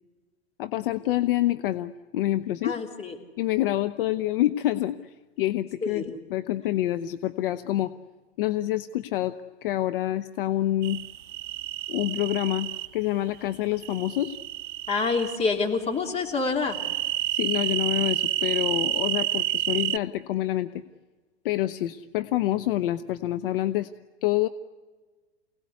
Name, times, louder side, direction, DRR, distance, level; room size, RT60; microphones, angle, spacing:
voice 1, 0.6-2.7 3.4-7.9 8.4-9.3 9.6-11.0 11.9-14.4 17.3-20.8 21.4-23.9 24.2-24.5, left 14 dB, 50° left, 10 dB, 0.9 m, -27 dB
voice 2, 2.6-3.2 5.8-6.2 14.9-16.8, left 4 dB, 20° left, 1 dB, 3.3 m, -27 dB
sound 1, 10.8-12.9 13.8-15.4 16.6-20.0, right 14 dB, 45° right, 0.8 m, -29 dB
28.0 x 18.0 x 9.6 m, 1.3 s
hypercardioid pair, 110°, 34 cm